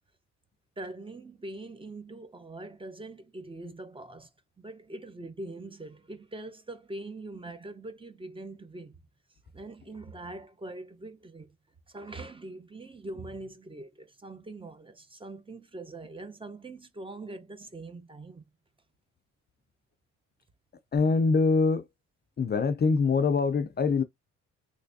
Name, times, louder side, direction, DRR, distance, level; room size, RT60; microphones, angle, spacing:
voice 1, 0.8-4.3 4.6-8.9 9.5-11.5 11.9-18.4, right 2 dB, 15° right, 0.8 m, -43 dB
voice 2, 20.9-21.9 22.4-24.0, left 4 dB, 35° left, 0.5 m, -24 dB
3.3 x 3.3 x 2.6 m
cardioid pair, 90°, 30 cm